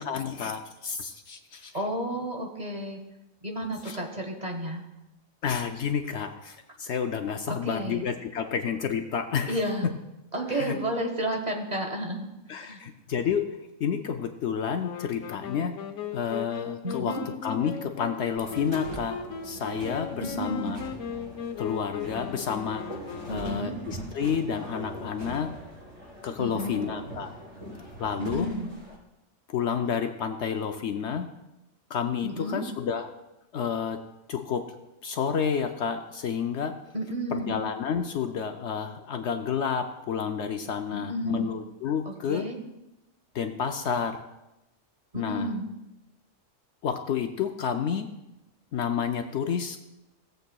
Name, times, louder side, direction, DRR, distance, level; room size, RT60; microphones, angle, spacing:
voice 1, 0.0-1.7 3.8-4.0 5.4-9.6 10.5-10.8 12.5-15.8 16.1-19.2 19.4-20.8 21.6-23.0 23.3-25.5 26.2-27.3 28.0-28.5 29.5-31.3 31.9-33.1 33.5-34.0 34.3-34.7 35.0-36.8 37.3-42.5 43.3-44.2 45.1-45.5 46.8-48.1 48.7-49.8, left 7 dB, 65° left, 6 dB, 0.8 m, -30 dB
voice 2, 1.7-3.0 3.4-4.8 7.5-8.0 9.5-9.9 10.3-12.3 12.5-12.8 16.8-17.3 20.2-20.8 23.3-23.8 26.4-26.8 28.2-28.7 32.2-32.6 36.9-37.6 40.9-41.5 42.0-42.6 45.1-45.7, equal, 35° right, 2 dB, 1.1 m, -32 dB
Wind instrument woodwind instrument, 14.8-23.8, left 7 dB, 90° left, 1.1 m, -38 dB
sound 1, 18.4-28.9, right 1 dB, 85° right, 4.3 m, -41 dB
17.0 x 7.8 x 2.3 m, 0.95 s
omnidirectional pair, 1.4 m